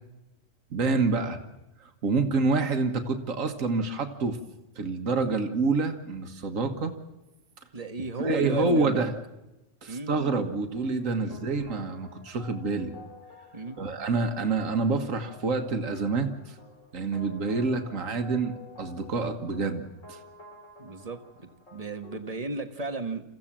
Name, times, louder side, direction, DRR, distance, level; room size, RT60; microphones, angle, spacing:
voice 1, 0.7-1.4 1.8-4.4 4.8-6.9 8.2-9.1 9.8-12.9 13.8-16.6 16.9-20.2, right 3 dB, 80° right, 6 dB, 1.9 m, -27 dB
voice 2, 7.7-9.1 9.9-10.1 11.2-11.4 13.5-13.8 20.8-23.2, right 2 dB, 30° right, 7 dB, 1.5 m, -34 dB
sound 1, 10.8-22.4, left 2 dB, 75° left, 3.0 m, -50 dB
28.0 x 15.0 x 7.5 m, 1.0 s
omnidirectional pair, 1.3 m